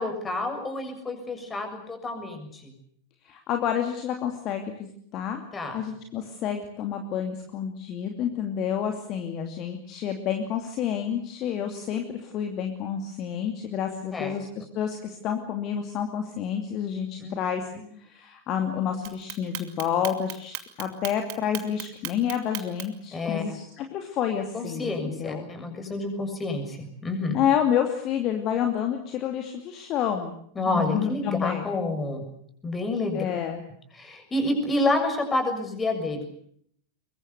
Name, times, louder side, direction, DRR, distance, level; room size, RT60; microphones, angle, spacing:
voice 1, 0.0-2.7 5.5-5.8 14.1-14.3 17.2-17.3 23.1-23.6 24.5-27.4 30.6-32.2 32.6-33.2 34.0-36.2, left 2 dB, 15° left, 6 dB, 6.9 m, -29 dB
voice 2, 3.2-5.4 5.7-17.7 18.0-25.5 27.3-30.4 30.7-31.7 33.1-33.6, left 8 dB, 35° left, 5 dB, 2.6 m, -29 dB
Clock, 19.0-23.1, right 18 dB, 45° right, 2.5 m, -36 dB
23.5 x 23.0 x 8.1 m, 0.66 s
figure-of-eight pair, 90°, 0 cm